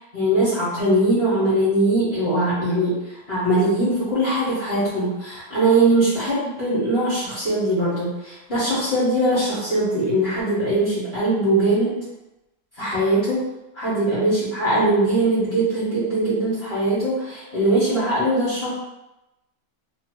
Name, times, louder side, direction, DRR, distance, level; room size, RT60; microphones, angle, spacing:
voice 1, 0.1-12.0 12.8-13.5 13.7-18.7, right 1 dB, 45° left, -11 dB, 1.4 m, -21 dB
2.8 x 2.7 x 2.9 m, 0.95 s
omnidirectional pair, 1.6 m